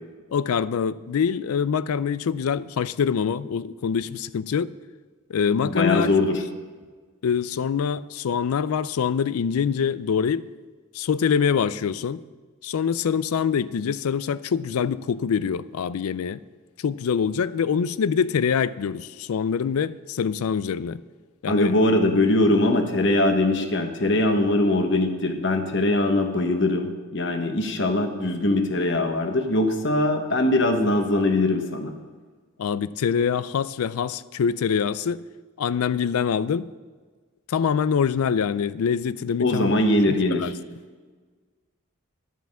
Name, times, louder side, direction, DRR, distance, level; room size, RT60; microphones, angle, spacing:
voice 1, 0.3-4.7 5.3-6.4 7.2-10.5 10.9-12.2 12.6-16.4 16.8-21.0 21.4-21.7 32.6-35.2 35.6-36.7 37.5-39.7 40.1-40.5, left 7 dB, 90° left, 17 dB, 0.4 m, -25 dB
voice 2, 5.6-6.4 21.5-31.9 39.4-40.5, left 2 dB, 55° left, 5 dB, 1.1 m, -21 dB
11.0 x 5.8 x 7.3 m, 1.4 s
head